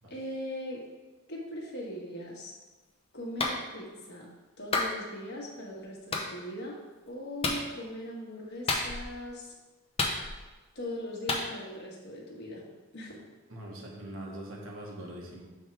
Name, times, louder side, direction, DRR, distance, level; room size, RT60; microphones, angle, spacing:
voice 1, 0.1-0.8 1.3-2.5 3.1-4.3 4.6-6.8 7.1-9.5 10.7-12.6 12.9-13.2, left 1 dB, 55° left, -2 dB, 1.4 m, -40 dB
Clapping, 3.4-3.6 4.7-4.9 6.1-6.3 7.4-7.6 8.7-9.1 10.0-10.5 11.3-11.5, left 3 dB, 25° left, 0.7 m, -29 dB
voice 2, 13.5-15.4, right 1 dB, 70° right, -2 dB, 1.4 m, -42 dB
7.3 x 3.6 x 4.5 m, 1.2 s
head